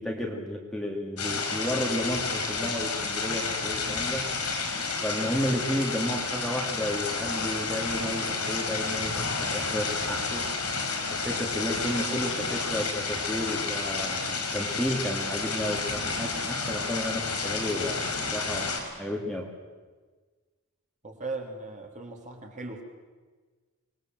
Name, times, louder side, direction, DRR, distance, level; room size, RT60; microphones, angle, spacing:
voice 1, 0.0-4.2 5.0-10.4 11.1-19.5, equal, ahead, 0 dB, 2.4 m, -32 dB
sound 1, 1.2-18.8, left 4 dB, 85° left, 4.8 m, -30 dB
voice 2, 21.0-22.8, right 3 dB, 35° right, 2 dB, 3.3 m, -38 dB
25.0 x 21.0 x 7.8 m, 1.4 s
head